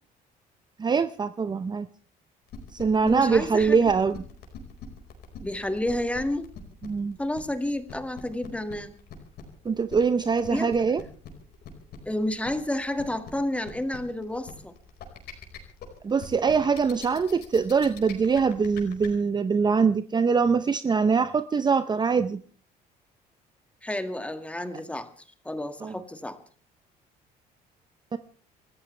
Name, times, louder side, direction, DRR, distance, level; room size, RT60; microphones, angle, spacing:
voice 1, 0.8-1.9 2.7-4.2 6.8-7.2 9.6-11.0 16.0-22.4 25.8-26.0 28.1-28.2, right 5 dB, 25° right, 11 dB, 0.7 m, -23 dB
sound 1, 2.5-19.1, left 9 dB, 75° left, 4.8 m, -43 dB
voice 2, 3.0-3.8 5.4-6.5 7.2-8.9 10.5-10.7 12.1-14.7 23.8-25.1 25.5-26.4, left 1 dB, 5° left, 8 dB, 1.9 m, -30 dB
28.5 x 14.5 x 3.3 m, 0.41 s
cardioid pair, 110°, 17 cm